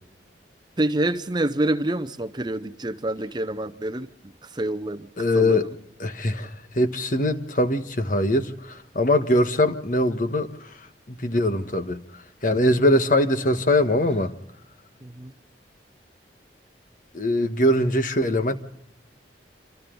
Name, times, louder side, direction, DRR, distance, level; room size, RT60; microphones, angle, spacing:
voice 1, 0.8-4.1 4.4-5.8 15.0-15.3, right 1 dB, 25° right, 0.7 m, -27 dB
voice 2, 5.2-5.7 6.0-10.5 11.1-12.0 12.4-14.3 17.1-18.6, left 1 dB, 45° left, 1.3 m, -22 dB
27.0 x 26.5 x 3.9 m
head